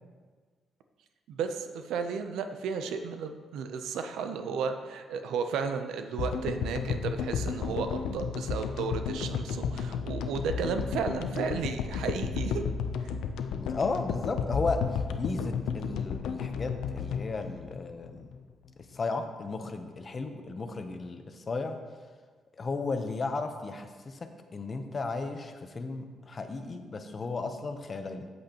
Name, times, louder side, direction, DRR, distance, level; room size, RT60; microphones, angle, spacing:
voice 1, 1.3-12.6 13.0-13.1, right 6 dB, 85° right, 7 dB, 0.6 m, -33 dB
sound 1, 6.2-18.5, left 6 dB, 85° left, 0.5 m, -33 dB
voice 2, 13.5-18.3 18.9-21.8 22.6-28.3, left 3 dB, 35° left, 7 dB, 0.8 m, -34 dB
8.4 x 8.0 x 2.9 m, 1.5 s
cardioid pair, 90°, 0 cm